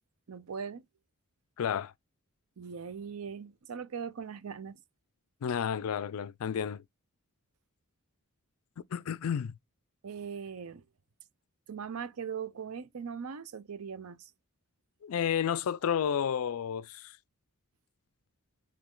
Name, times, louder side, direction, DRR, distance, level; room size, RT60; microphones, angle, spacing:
voice 1, 0.3-0.8 2.6-4.8 10.0-10.8 11.7-14.3, right 6 dB, 70° right, 0.5 m, -40 dB
voice 2, 1.6-1.9 5.4-6.8 8.9-9.6 15.0-17.2, left 8 dB, 70° left, 0.4 m, -31 dB
5.1 x 2.8 x 3.7 m
head